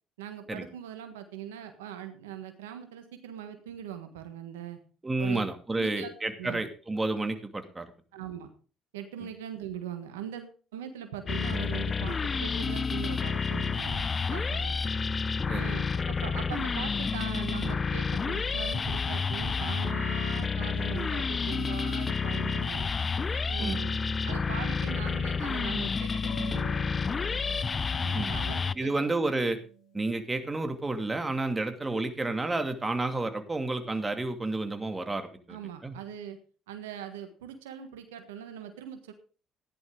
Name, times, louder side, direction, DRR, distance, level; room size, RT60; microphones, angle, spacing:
voice 1, 0.2-4.8 5.2-5.4 5.8-6.1 6.4-6.6 8.1-8.5 8.9-14.8 15.5-22.9 23.5-24.0 24.2-26.8 28.0-29.1 35.5-36.4 36.7-39.1, right 9 dB, 90° right, 8 dB, 1.4 m, -41 dB
voice 2, 5.0-7.9 9.2-9.3 15.5-15.7 23.6-23.9 28.1-28.4 28.7-29.6 29.9-36.0, right 2 dB, 20° right, 7 dB, 2.4 m, -31 dB
sound 1, 11.3-28.8, left 5 dB, 35° left, 0.5 m, -30 dB
sound 2, 26.2-32.4, equal, 65° left, 5.2 m, -50 dB
14.5 x 10.5 x 3.8 m, 0.37 s
hypercardioid pair, 60°, 0 cm